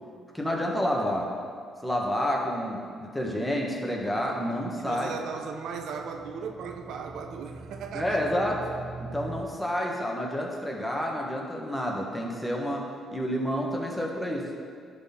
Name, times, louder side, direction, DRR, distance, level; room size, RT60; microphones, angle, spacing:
voice 1, 0.3-1.3 1.8-5.1 7.9-8.6 9.0-14.5, equal, 5° left, -1 dB, 1.3 m, -29 dB
sound 1, 4.7-9.4, right 4 dB, 60° right, 1.2 m, -44 dB
voice 2, 4.8-8.2, right 6 dB, 75° right, 5 dB, 0.5 m, -37 dB
11.0 x 4.1 x 4.4 m, 2.2 s
cardioid pair, 90°, 0 cm